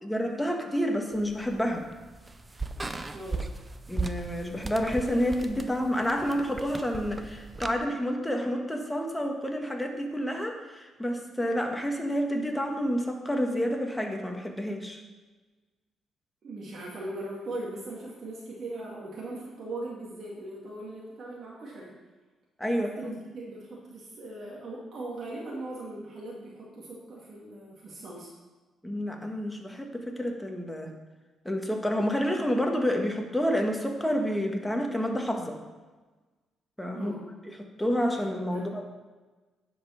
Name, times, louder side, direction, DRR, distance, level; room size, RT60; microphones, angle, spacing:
voice 1, 0.0-1.8 3.9-15.0 22.6-23.2 28.8-30.9 31.4-35.6 36.8-37.1 37.6-38.8, equal, 5° left, 2 dB, 1.5 m, -29 dB
sound 1, 1.1-7.8, right 3 dB, 20° right, 0.6 m, -38 dB
voice 2, 3.1-3.5 16.4-21.9 22.8-28.3 36.9-37.2 38.1-38.2 38.5-38.7, right 2 dB, 55° right, -4 dB, 2.1 m, -39 dB
10.0 x 5.3 x 5.7 m, 1.3 s
cardioid pair, 90°, 0 cm